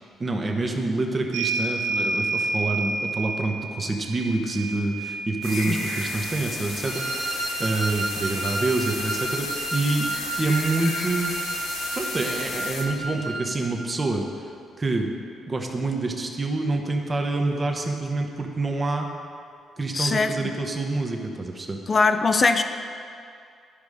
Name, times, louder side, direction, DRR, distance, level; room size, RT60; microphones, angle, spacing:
voice 1, 0.2-10.1 10.4-11.3 11.9-14.3 14.8-15.1 15.5-19.1 19.8-21.8, right 2 dB, 25° right, 2 dB, 1.0 m, -27 dB
sound 1, 1.3-9.4 10.7-10.8 11.1-12.2, right 3 dB, 80° right, 0.5 m, -31 dB
sound 2, 5.4-12.8, left 4 dB, 85° left, 1.1 m, -34 dB
Wind instrument woodwind instrument, 6.8-13.6, right 2 dB, 55° right, 0.9 m, -31 dB
voice 2, 19.9-20.3 21.9-22.6, left 4 dB, 35° left, 8 dB, 0.5 m, -21 dB
11.5 x 5.2 x 4.9 m, 2.4 s
cardioid pair, 90°, 0 cm